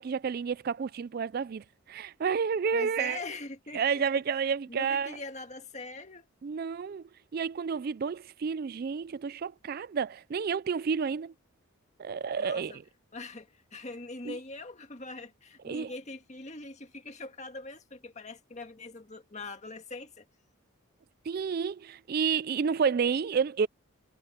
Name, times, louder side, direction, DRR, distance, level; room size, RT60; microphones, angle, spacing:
voice 1, 0.0-3.2 3.7-5.1 6.4-7.0 7.3-11.3 12.0-12.7 14.3-14.4 15.6-15.9 21.3-23.7, right 6 dB, 45° right, 0.3 m, -30 dB
voice 2, 2.7-4.0 4.3-6.3 12.3-12.8 13.1-20.3, left 3 dB, 35° left, 1.8 m, -42 dB
head